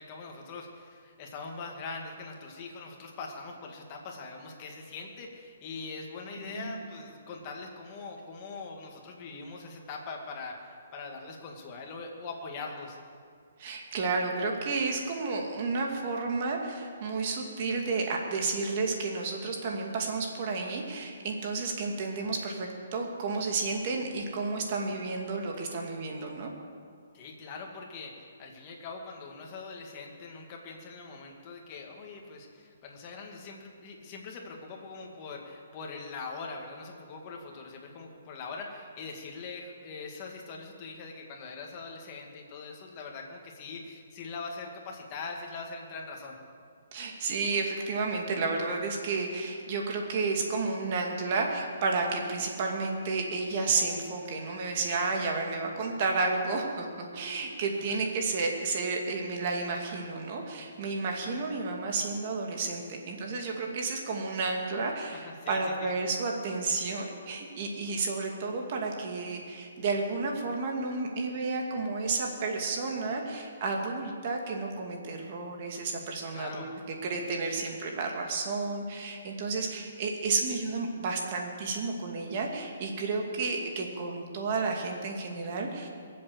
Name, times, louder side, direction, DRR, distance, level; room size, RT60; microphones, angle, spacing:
voice 1, 0.0-13.0 27.1-46.4 57.9-58.0 65.1-65.9 76.3-76.7, left 4 dB, 30° left, 1 dB, 2.1 m, -42 dB
voice 2, 6.5-6.9 13.6-26.5 46.9-56.9 57.1-76.7 77.0-85.9, right 3 dB, 40° right, 1 dB, 2.3 m, -31 dB
21.5 x 7.8 x 8.0 m, 2.2 s
hypercardioid pair, 165°, 0 cm